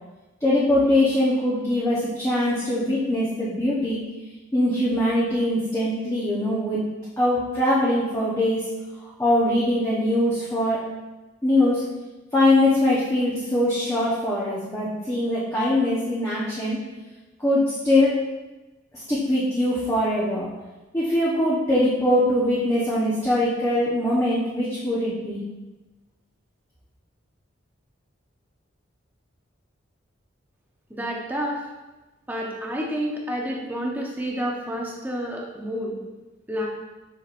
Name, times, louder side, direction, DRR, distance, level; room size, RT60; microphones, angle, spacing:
voice 1, 0.4-4.0 4.5-6.8 7.2-8.6 9.2-10.8 11.4-11.8 12.3-16.8 17.4-18.1 18.9-20.5 20.9-25.4, left 1 dB, 15° left, -8 dB, 1.0 m, -22 dB
voice 2, 30.9-31.6 32.3-36.0 36.5-36.7, equal, 10° right, -2 dB, 0.9 m, -29 dB
7.6 x 6.0 x 2.6 m, 1.1 s
head